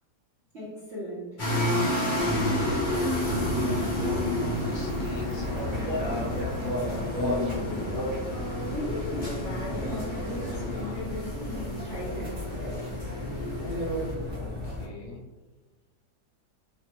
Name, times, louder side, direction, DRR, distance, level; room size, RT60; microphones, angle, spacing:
voice 1, 0.5-1.4 8.3-12.4, left 1 dB, 50° right, -8 dB, 0.9 m, -37 dB
sound 1, 1.4-14.1, left 1 dB, 45° left, 0.7 m, -31 dB
sound 2, 2.1-14.9, left 1 dB, 30° right, 1.0 m, -33 dB
voice 2, 3.7-5.8 14.4-15.3, left 1 dB, 60° left, -2 dB, 1.0 m, -41 dB
3.3 x 2.2 x 2.8 m, 1.1 s
omnidirectional pair, 1.8 m